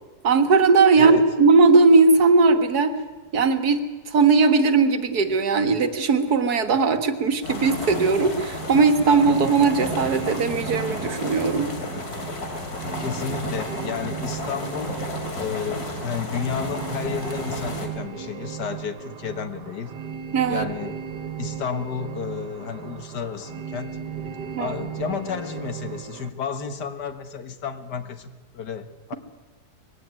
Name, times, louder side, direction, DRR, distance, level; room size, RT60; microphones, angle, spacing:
voice 1, 0.2-3.0 3.3-11.7 20.3-20.7 24.5-24.7, right 4 dB, 65° right, 9 dB, 1.9 m, -18 dB
voice 2, 1.0-1.3 13.0-15.0 15.4-19.9 20.5-21.0 21.4-24.0 24.6-29.1, left 6 dB, 80° left, 10 dB, 2.0 m, -32 dB
sound 1, 7.4-17.9, left 2 dB, 65° left, 3.3 m, -33 dB
sound 2, 8.4-26.3, right 7 dB, 90° right, 1.8 m, -36 dB
21.5 x 16.5 x 9.5 m, 1.2 s
omnidirectional pair, 1.8 m